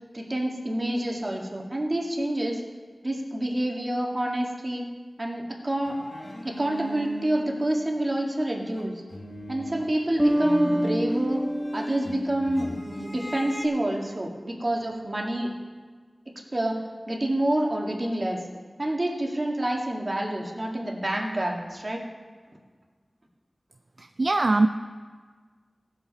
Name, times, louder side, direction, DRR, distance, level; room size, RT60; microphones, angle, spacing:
voice 1, 0.1-2.6 3.0-4.8 5.2-6.0 6.4-9.0 9.5-11.4 11.7-15.5 16.5-18.4 18.8-22.0, right 1 dB, 40° right, -1 dB, 1.8 m, -28 dB
sound 1, 5.8-8.3 8.6-13.7, equal, 45° left, 1.4 m, -39 dB
sound 2, 10.2-13.5, equal, 5° right, 1.2 m, -28 dB
voice 2, 24.0-24.7, right 2 dB, 60° right, 7 dB, 0.4 m, -22 dB
17.0 x 7.7 x 4.1 m, 1.5 s
wide cardioid pair, 65°, 0 cm